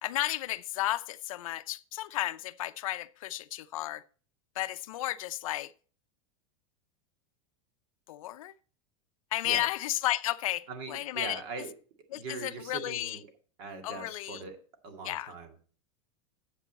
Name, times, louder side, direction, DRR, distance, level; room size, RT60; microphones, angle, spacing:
voice 1, 0.0-4.0 4.6-5.7 8.1-8.5 9.3-11.4 12.1-13.2 13.8-14.4 15.0-15.3, left 15 dB, 80° left, 0.6 m, -33 dB
voice 2, 10.7-11.7 12.1-13.3 13.6-14.6 14.8-15.7, right 4 dB, 45° right, 2.2 m, -41 dB
10.0 x 8.1 x 4.1 m
supercardioid pair, 175°, 17 cm